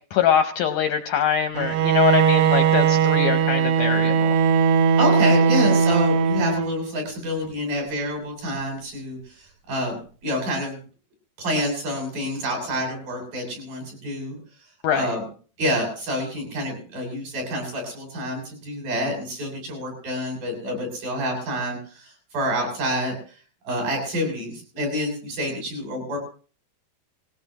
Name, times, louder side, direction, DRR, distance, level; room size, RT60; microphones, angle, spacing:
voice 1, 0.1-4.4 14.8-15.1, left 9 dB, 75° left, 7 dB, 1.9 m, -23 dB
Bowed string instrument, 1.6-6.9, right 6 dB, 85° right, 1.6 m, -19 dB
voice 2, 5.0-10.0 10.2-10.8 11.4-14.4 14.9-15.2 15.6-23.2 23.7-26.2, equal, 60° right, 2 dB, 8.8 m, -28 dB
20.0 x 18.0 x 3.0 m, 0.40 s
omnidirectional pair, 4.5 m